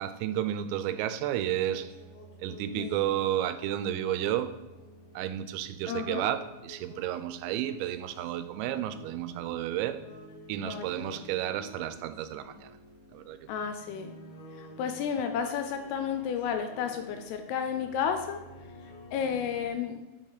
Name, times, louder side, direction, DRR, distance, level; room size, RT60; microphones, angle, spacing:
voice 1, 0.0-1.9 2.4-4.6 5.2-10.1 10.5-12.8 13.1-13.5, right 11 dB, 90° right, 2.8 m, -32 dB
sound 1, 1.4-19.7, equal, 65° left, 1.9 m, -50 dB
voice 2, 2.8-3.1 5.9-6.3 10.6-11.2 13.5-14.1 14.6-18.4 19.1-20.0, left 7 dB, 80° left, 2.5 m, -32 dB
7.7 x 5.3 x 4.0 m
omnidirectional pair, 5.0 m